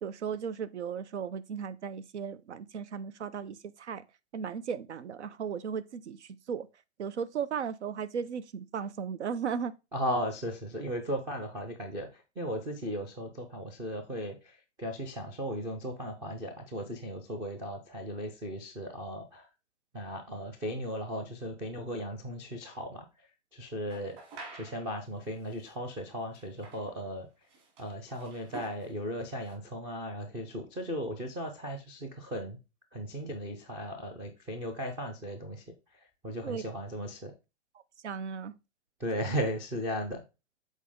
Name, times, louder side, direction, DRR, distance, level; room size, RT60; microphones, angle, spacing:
voice 1, 0.0-4.0 4.3-6.7 7.0-9.7 36.4-36.6 38.0-38.5, right 7 dB, 80° right, 0.8 m, -36 dB
voice 2, 9.9-19.5 19.9-23.3 23.5-24.2 24.5-27.3 27.8-32.6 32.9-37.3 39.0-40.2, equal, 10° right, 0.3 m, -36 dB
sound 1, 23.9-24.9 25.6-25.7 26.3-26.8 27.5-28.9 29.2-29.5, right 3 dB, 35° right, 2.7 m, -47 dB
7.3 x 4.1 x 3.6 m
hypercardioid pair, 140°, 34 cm